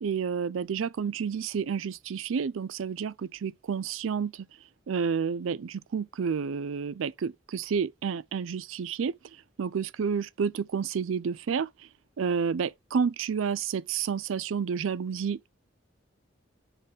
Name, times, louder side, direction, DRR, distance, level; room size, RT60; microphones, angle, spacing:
voice 1, 0.0-4.5 4.9-11.9 12.2-15.5, right 6 dB, 80° right, 0.4 m, -30 dB
5.1 x 4.1 x 5.4 m
head